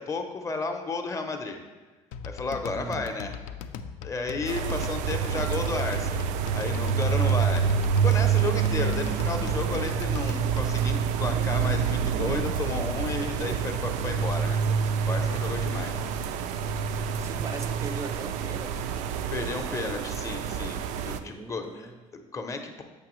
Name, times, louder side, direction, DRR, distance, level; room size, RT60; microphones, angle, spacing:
voice 1, 0.0-1.6 2.2-3.4 4.0-7.7 8.0-16.0 19.3-22.8, left 3 dB, 25° left, 5 dB, 0.6 m, -33 dB
sound 1, 2.1-10.8, left 7 dB, 90° left, 0.4 m, -39 dB
voice 2, 2.7-3.1 17.2-19.1 19.5-20.6 21.2-22.0, right 3 dB, 25° right, 6 dB, 0.4 m, -41 dB
sound 2, 4.5-21.2, right 7 dB, 90° right, 0.4 m, -27 dB
6.8 x 5.5 x 3.0 m, 1.3 s
cardioid pair, 140°, 12 cm